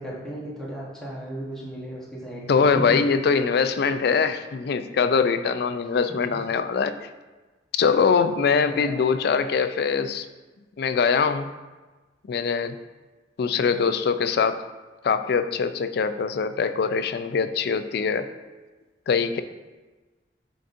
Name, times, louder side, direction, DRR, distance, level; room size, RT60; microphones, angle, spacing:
voice 1, 0.0-3.0 6.3-6.4 8.7-9.2, right 1 dB, 5° left, -7 dB, 1.0 m, -35 dB
voice 2, 2.5-7.1 7.7-10.3 10.8-11.5 12.3-12.8 13.4-14.6 15.0-18.3 19.1-19.4, left 5 dB, 60° left, 10 dB, 0.4 m, -23 dB
10.0 x 4.0 x 2.5 m, 1.2 s
head